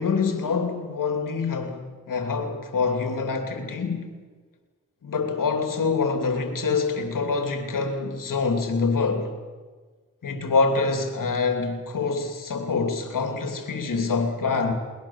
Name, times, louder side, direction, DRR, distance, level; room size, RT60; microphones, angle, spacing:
voice 1, 0.0-4.1 5.0-9.3 10.2-14.7, left 4 dB, 85° left, 2.7 m, -25 dB
21.5 x 20.0 x 7.3 m
cardioid pair, 55°, 32 cm